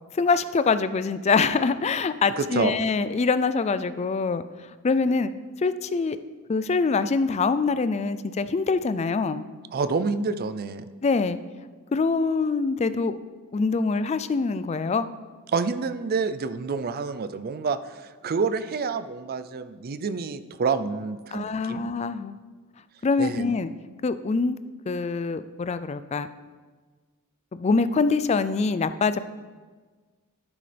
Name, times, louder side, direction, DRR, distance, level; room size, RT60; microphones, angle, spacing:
voice 1, 0.1-4.4 4.8-5.3 5.6-6.2 6.5-9.4 11.0-11.4 11.9-13.2 13.5-15.1 21.3-22.4 23.0-23.7 24.0-24.6 24.9-26.3 27.5-29.2, left 4 dB, 30° left, 13 dB, 0.3 m, -24 dB
voice 2, 2.4-2.8 9.7-10.9 15.5-21.8 23.2-23.4, right 4 dB, 45° right, 12 dB, 0.4 m, -28 dB
11.0 x 8.9 x 3.4 m, 1.4 s
head